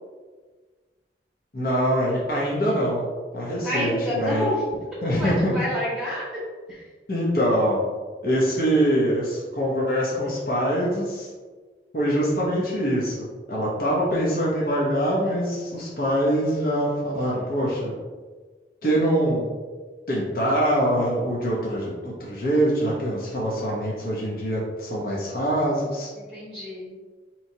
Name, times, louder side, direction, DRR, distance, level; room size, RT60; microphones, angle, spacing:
voice 1, 1.5-3.0 3.3-4.5 5.0-5.5 7.1-7.8 8.2-11.3 11.9-17.9 18.8-19.5 20.1-26.1, equal, 55° left, -5 dB, 0.8 m, -24 dB
voice 2, 3.6-4.6 5.1-6.2 6.7-6.8 17.1-17.5 26.2-27.0, left 1 dB, 5° right, -8 dB, 1.0 m, -28 dB
4.7 x 3.0 x 2.7 m, 1.4 s
head